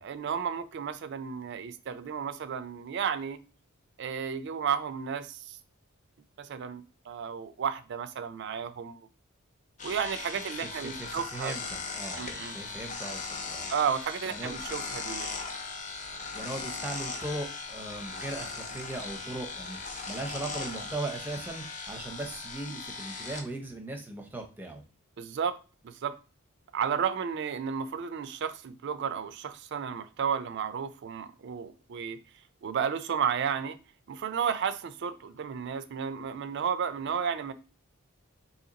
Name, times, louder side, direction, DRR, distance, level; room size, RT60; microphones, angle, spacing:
voice 1, 0.0-3.4 4.0-5.6 6.4-9.0 9.8-11.5 12.2-12.5 13.7-15.3 25.2-25.6 25.8-26.2 26.7-32.2 32.6-33.8 34.1-37.5, right 7 dB, 55° right, 0.3 m, -32 dB
sound 1, 9.8-23.4, left 4 dB, 35° left, 0.5 m, -38 dB
voice 2, 10.8-12.3 12.5-13.7 14.3-14.6 16.3-19.8 20.1-24.8, right 2 dB, 10° right, 0.6 m, -38 dB
2.8 x 2.8 x 3.8 m
head